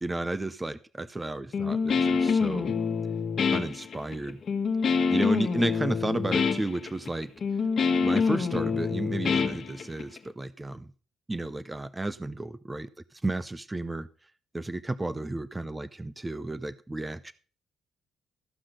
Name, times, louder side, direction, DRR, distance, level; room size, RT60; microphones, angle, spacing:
voice 1, 0.0-2.7 3.5-4.4 5.1-7.3 8.0-10.9 11.3-14.1 14.5-17.3, right 2 dB, 15° right, 15 dB, 0.6 m, -32 dB
Guitar, 1.5-10.2, left 5 dB, 50° left, 1.5 m, -26 dB
14.5 x 5.9 x 6.4 m, 0.39 s
cardioid pair, 90°, 0 cm